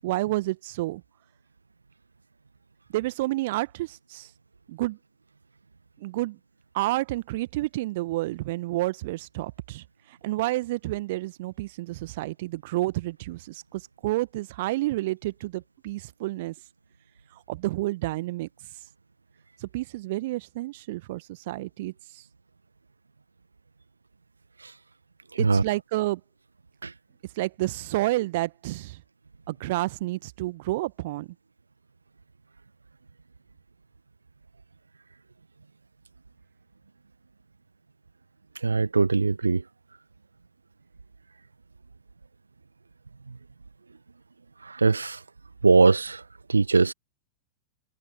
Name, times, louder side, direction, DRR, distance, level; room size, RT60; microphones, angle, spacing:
voice 1, 0.0-1.0 2.9-4.3 4.7-5.0 6.0-6.4 6.7-16.5 17.5-18.5 19.6-22.2 25.4-26.2 27.4-29.0 29.5-31.3, right 18 dB, 50° right, 1.4 m, -30 dB
voice 2, 38.6-39.6 44.7-45.2 45.6-46.2 46.5-46.9, right 4 dB, 75° right, 0.9 m, -21 dB
figure-of-eight pair, 95°, 0 cm